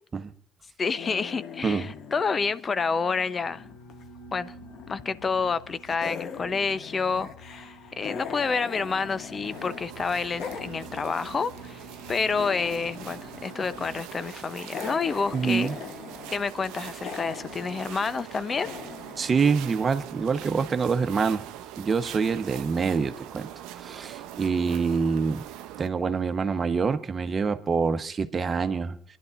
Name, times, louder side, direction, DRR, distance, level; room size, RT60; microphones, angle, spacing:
voice 1, 0.8-3.6 4.3-4.5 4.9-7.6 8.0-15.7 16.3-18.7, left 5 dB, 40° left, 0.8 m, -29 dB
sound 1, 0.9-4.0 4.3-5.6 5.9-9.8 10.1-20.2, left 7 dB, 60° left, 1.2 m, -42 dB
sound 2, 3.4-14.0, equal, 85° left, 1.9 m, -49 dB
sound 3, 9.4-25.9, right 12 dB, 70° right, 0.7 m, -42 dB
voice 2, 15.3-15.7 19.2-21.5 21.8-23.5 23.8-25.4 25.8-28.9, right 5 dB, 40° right, 1.1 m, -26 dB
27.5 x 11.0 x 2.6 m
hypercardioid pair, 50°, 0 cm